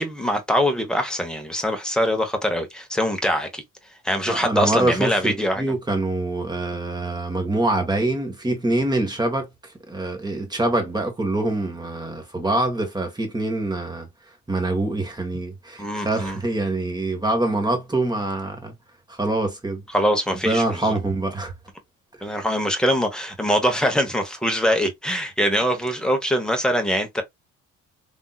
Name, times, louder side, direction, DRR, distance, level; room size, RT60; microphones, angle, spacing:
voice 1, 0.0-3.6 4.0-5.6 15.8-16.4 19.9-20.9 22.2-27.2, equal, ahead, 1.0 m, -23 dB
voice 2, 4.3-9.5 9.9-14.1 14.5-18.7 19.1-19.8 20.3-21.5 22.3-22.4, right 2 dB, 15° right, 1.4 m, -25 dB
3.5 x 2.7 x 2.3 m
cardioid pair, 90°, 30 cm